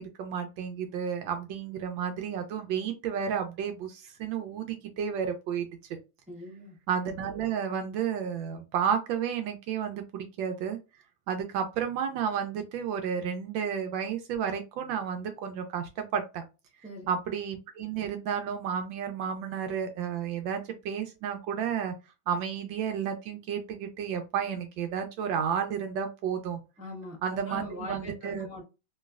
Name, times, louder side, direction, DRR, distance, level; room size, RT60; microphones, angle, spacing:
voice 1, 0.0-5.7 6.9-10.8 11.3-16.4 17.1-21.9 22.3-26.6 27.2-28.5, right 7 dB, 75° right, 6 dB, 1.2 m, -32 dB
voice 2, 6.3-6.8 16.8-17.1 26.8-28.6, left 1 dB, 10° right, -2 dB, 0.3 m, -41 dB
3.1 x 3.1 x 2.3 m, 0.28 s
omnidirectional pair, 2.2 m